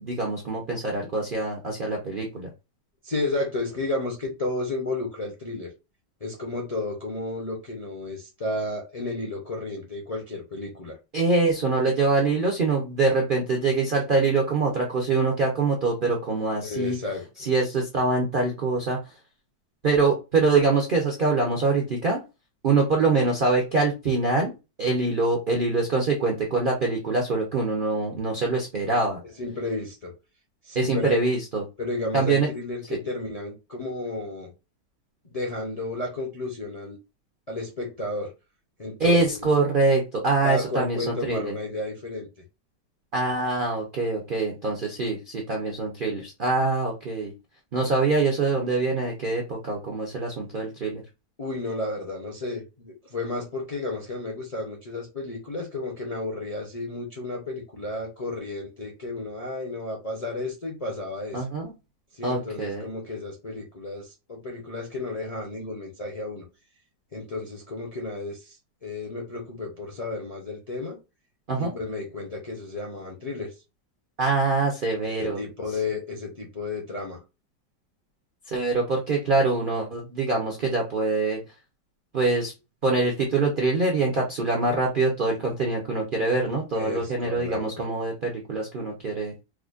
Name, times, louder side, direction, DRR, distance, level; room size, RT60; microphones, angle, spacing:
voice 1, 0.0-2.5 11.1-17.0 17.4-19.0 19.8-22.2 22.6-24.5 24.8-29.2 30.7-31.6 32.1-32.5 39.0-41.6 43.1-47.3 47.7-51.0 61.3-61.7 62.2-62.8 71.5-71.7 74.2-75.4 78.5-81.4 82.1-82.5 82.8-89.3, right 3 dB, 55° right, 0 dB, 0.6 m, -24 dB
voice 2, 3.0-5.7 6.2-10.9 16.6-17.5 29.2-30.1 30.6-31.2 31.8-34.5 35.2-37.0 37.5-38.3 38.8-39.4 40.4-42.3 51.4-61.5 62.1-66.4 67.1-68.6 68.8-71.0 71.5-73.5 75.1-77.2 86.7-87.8, left 2 dB, 40° left, -1 dB, 0.5 m, -32 dB
4.8 x 2.1 x 2.4 m, 0.26 s
omnidirectional pair, 1.9 m